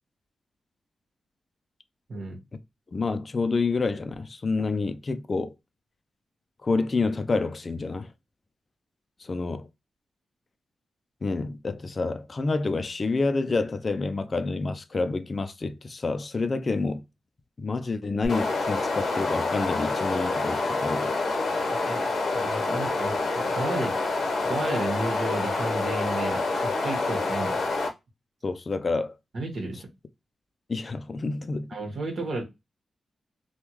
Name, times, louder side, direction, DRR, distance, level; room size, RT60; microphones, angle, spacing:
voice 1, 2.1-2.4 21.9-22.0 22.3-27.7 29.3-29.9 31.7-32.4, right 2 dB, 65° right, 1.3 m, -33 dB
voice 2, 2.9-5.5 6.6-8.1 9.2-9.7 11.2-17.0 17.6-21.2 21.8-22.0 22.7-22.8 28.4-29.2 30.7-31.7, left 3 dB, 40° left, 0.4 m, -28 dB
sound 1, 18.2-27.9, left 3 dB, 80° left, 0.7 m, -27 dB
3.5 x 2.3 x 2.9 m
wide cardioid pair, 110°, 0 cm